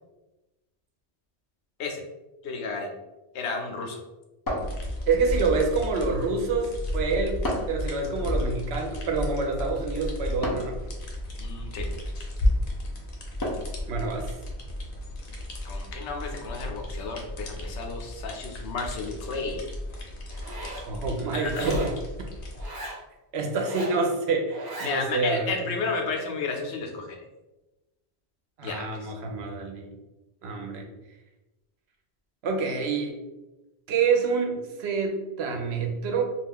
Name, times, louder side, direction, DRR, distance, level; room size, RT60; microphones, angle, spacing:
voice 1, 2.4-2.9 3.3-4.0 11.4-11.9 15.6-19.6 21.3-21.8 24.8-27.2 28.6-29.1, left 4 dB, 85° left, 2 dB, 0.9 m, -32 dB
sound 1, 4.5-5.3 7.4-7.9 10.4-10.8 13.4-13.8, left 1 dB, 35° left, 0.3 m, -31 dB
sound 2, 4.6-22.7, left 1 dB, 60° left, 0.8 m, -33 dB
voice 2, 5.1-7.4 7.7-10.8 13.9-14.2 20.9-21.9 23.3-25.7 28.6-29.9 30.4-30.9 32.4-33.1 33.9-36.2, right 4 dB, 75° right, 2 dB, 0.8 m, -27 dB
Zipper (clothing), 20.3-20.9 21.5-22.0 22.5-23.0 23.6-24.0 24.5-25.0, right 1 dB, 30° right, 0.4 m, -37 dB
2.4 x 2.3 x 3.4 m, 1.1 s
omnidirectional pair, 1.1 m